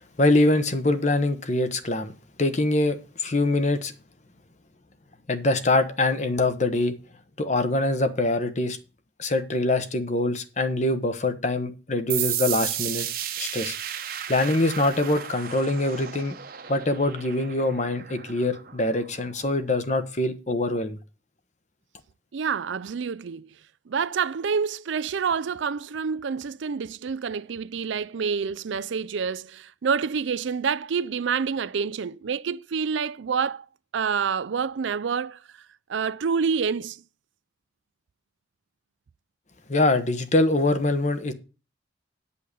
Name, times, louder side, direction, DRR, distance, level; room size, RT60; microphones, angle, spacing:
voice 1, 0.2-2.1 2.4-3.9 5.3-6.9 7.4-8.8 9.2-13.1 13.4-13.8 14.3-16.3 16.7-21.0 39.7-41.3, left 2 dB, 40° left, 1.0 m, -24 dB
sound 1, 12.1-19.5, right 11 dB, 50° right, 1.0 m, -33 dB
voice 2, 22.3-23.5 23.9-33.7 33.9-35.4 35.9-37.0, right 6 dB, 75° right, 0.4 m, -27 dB
9.8 x 5.6 x 6.7 m
head